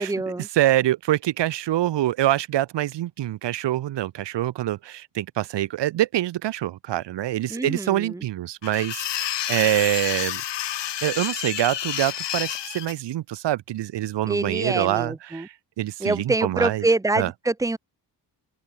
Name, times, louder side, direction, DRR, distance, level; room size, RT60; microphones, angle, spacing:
voice 1, 0.0-0.5 7.5-8.2 14.3-15.5 16.0-17.8, right 2 dB, 10° right, 1.0 m, -25 dB
voice 2, 0.5-10.4 11.0-16.8 17.2-17.3, right 13 dB, 90° right, 0.9 m, -25 dB
sound 1, 8.6-12.9, left 11 dB, 85° left, 2.0 m, -29 dB
open air
wide cardioid pair, 145°, 41 cm